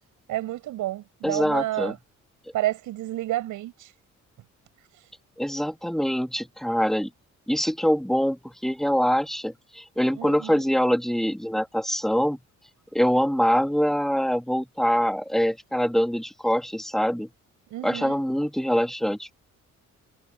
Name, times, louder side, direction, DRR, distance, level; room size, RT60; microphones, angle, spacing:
voice 1, 0.3-2.0 2.5-3.9 4.9-5.1 10.2-10.6 17.7-18.2, right 15 dB, 90° right, 7.4 m, -30 dB
voice 2, 1.2-1.9 5.4-7.1 7.5-12.4 12.9-17.3 17.8-19.4, equal, ahead, 2.8 m, -24 dB
cardioid pair, 90°, 30 cm